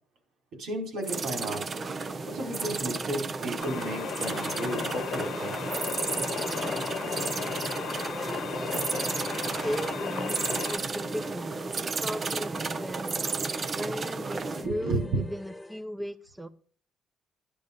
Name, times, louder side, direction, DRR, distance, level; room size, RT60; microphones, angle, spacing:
voice 1, 0.6-1.6 2.2-5.6 14.6-15.2, right 2 dB, 75° right, 4 dB, 4.6 m, -33 dB
sound 1, 1.0-14.7, right 4 dB, 45° right, 0.9 m, -33 dB
sound 2, 1.6-15.8, left 2 dB, 10° left, 1.7 m, -44 dB
sound 3, 3.6-10.8, left 9 dB, 80° left, 0.9 m, -35 dB
voice 2, 8.2-11.7 12.0-16.5, equal, 10° right, 9 dB, 0.9 m, -38 dB
11.5 x 11.0 x 5.2 m, 0.41 s
cardioid pair, 90°, 0 cm